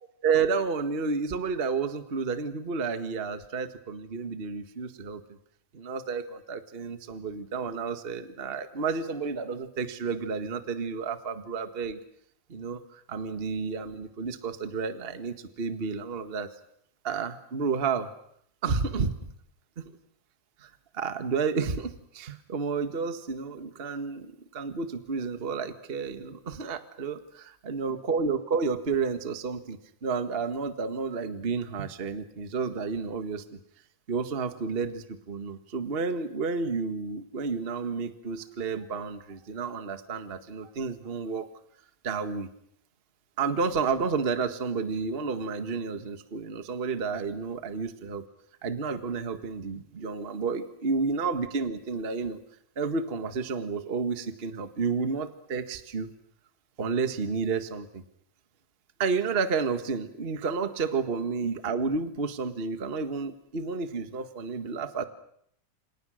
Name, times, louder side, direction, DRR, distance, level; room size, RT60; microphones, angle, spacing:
voice 1, 0.2-5.2 5.7-12.0 12.5-16.5 17.0-18.1 18.6-19.1 19.8-19.9 20.6-33.6 34.1-41.5 42.0-42.5 43.4-48.2 48.6-52.4 52.7-56.1 56.8-58.0 59.0-65.0, right 5 dB, 45° right, 9 dB, 0.7 m, -31 dB
28.5 x 27.0 x 6.5 m, 0.70 s
omnidirectional pair, 4.1 m